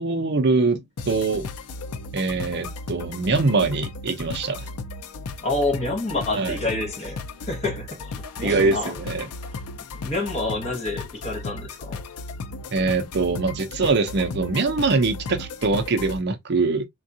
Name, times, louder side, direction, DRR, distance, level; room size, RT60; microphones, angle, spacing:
voice 1, 0.0-1.5 2.1-4.7 6.3-6.5 8.4-9.3 12.7-16.8, right 3 dB, 50° right, 0.5 m, -23 dB
sound 1, 1.0-16.2, left 3 dB, 85° left, 0.5 m, -35 dB
voice 2, 5.4-8.9 9.9-12.0, left 2 dB, 30° left, 0.9 m, -28 dB
3.5 x 2.3 x 2.6 m
head